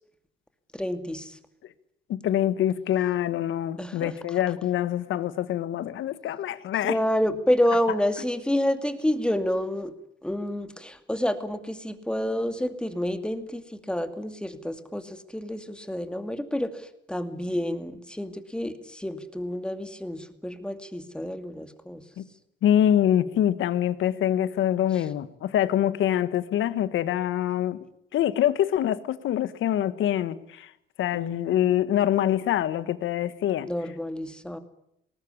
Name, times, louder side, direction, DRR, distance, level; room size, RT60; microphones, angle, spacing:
voice 1, 0.7-1.4 3.8-4.1 6.8-9.9 10.2-22.0 31.1-31.3 33.7-34.6, left 1 dB, 5° left, 8 dB, 2.5 m, -29 dB
voice 2, 2.1-7.0 22.2-22.3 22.6-27.8 28.1-30.7 31.0-33.7, left 11 dB, 80° left, 14 dB, 1.5 m, -25 dB
20.0 x 18.5 x 9.9 m, 0.74 s
cardioid pair, 90°, 20 cm